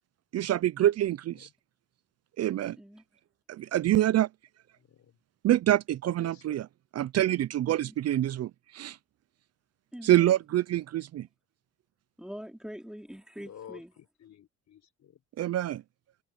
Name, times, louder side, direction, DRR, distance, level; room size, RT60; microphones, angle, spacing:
voice 1, 0.3-1.5 2.4-2.8 3.5-4.3 5.4-6.7 7.0-9.0 10.0-11.3 15.4-15.8, right 13 dB, 55° right, 0.5 m, -26 dB
voice 2, 4.8-5.2 6.2-6.6 13.4-15.2, left 9 dB, 65° left, 4.4 m, -51 dB
voice 3, 9.9-10.3 12.2-13.9, equal, ahead, 3.9 m, -44 dB
cardioid pair, 90°, 30 cm